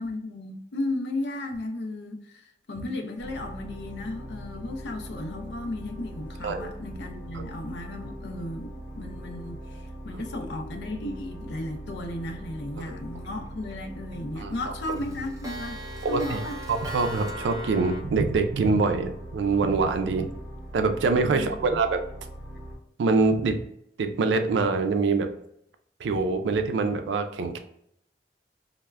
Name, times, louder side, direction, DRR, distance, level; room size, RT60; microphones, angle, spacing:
voice 1, 0.0-15.8 16.1-16.6 21.3-21.8, left 1 dB, 70° left, 5 dB, 0.4 m, -35 dB
sound 1, 3.2-22.8, right 1 dB, 45° right, 0.8 m, -41 dB
Clock, 13.2-13.7 14.1-14.2 14.6-18.0, right 1 dB, 20° right, 0.4 m, -38 dB
voice 2, 16.0-16.4 16.7-20.3 20.7-22.0 23.0-23.6 24.0-25.3 26.0-27.6, right 4 dB, 90° right, 7 dB, 0.3 m, -24 dB
2.3 x 2.0 x 3.2 m, 0.74 s
head